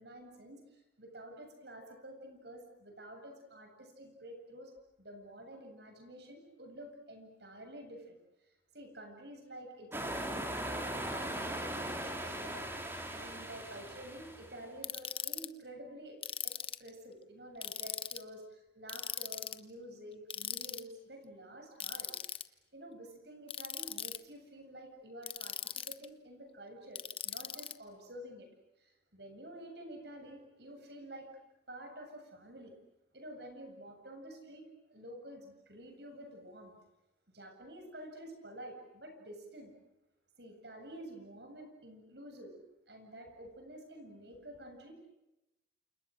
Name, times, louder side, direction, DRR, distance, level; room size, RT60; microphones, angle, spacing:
voice 1, 0.0-4.7 5.0-8.2 8.7-12.7 13.1-16.2 16.4-16.5 16.8-22.2 22.7-28.5 28.8-31.4 31.7-32.7 33.1-36.7 37.3-39.7 40.4-42.5 42.9-45.0, right 1 dB, 65° right, 4 dB, 7.8 m, -50 dB
sound 1, 9.9-14.7, right 1 dB, 10° right, 3.5 m, -39 dB
Ratchet pawl, 14.8-15.5 16.2-16.9 17.6-18.2 18.9-19.6 20.3-20.8 21.8-22.4 23.5-24.2 25.2-26.1 27.0-27.7, left 10 dB, 30° left, 1.0 m, -39 dB
29.0 x 29.0 x 6.5 m, 0.95 s
head